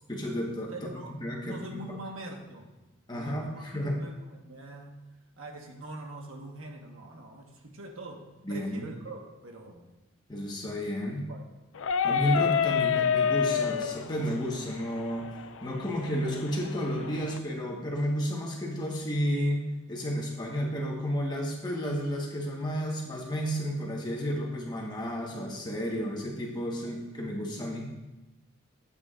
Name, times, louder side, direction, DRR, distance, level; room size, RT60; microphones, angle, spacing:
voice 1, 0.1-0.7 1.2-2.0 3.1-4.0 8.4-8.9 10.3-11.3 12.0-15.3 15.6-27.9, equal, 20° left, -1 dB, 1.2 m, -32 dB
voice 2, 0.7-2.7 3.1-3.7 4.0-5.0 5.4-9.9 11.3-11.5, right 2 dB, 80° right, 1 dB, 1.3 m, -43 dB
sound 1, 11.8-17.4, left 7 dB, 70° left, 0.4 m, -29 dB
11.5 x 8.2 x 2.4 m, 1.1 s
head